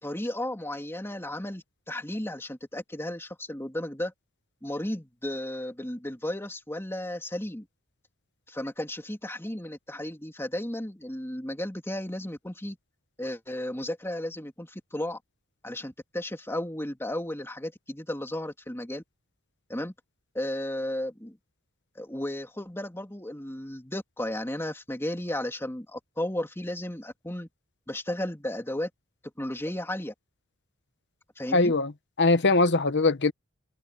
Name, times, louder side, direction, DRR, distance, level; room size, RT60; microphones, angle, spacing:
voice 1, 0.0-4.1 4.6-7.7 8.5-12.8 13.2-15.2 15.6-19.0 19.7-19.9 20.3-21.4 21.9-27.5 27.9-28.9 29.4-30.1 31.4-31.7, left 1 dB, 10° left, 3.0 m, -34 dB
voice 2, 31.5-31.9 32.2-33.3, left 3 dB, 55° left, 1.3 m, -21 dB
head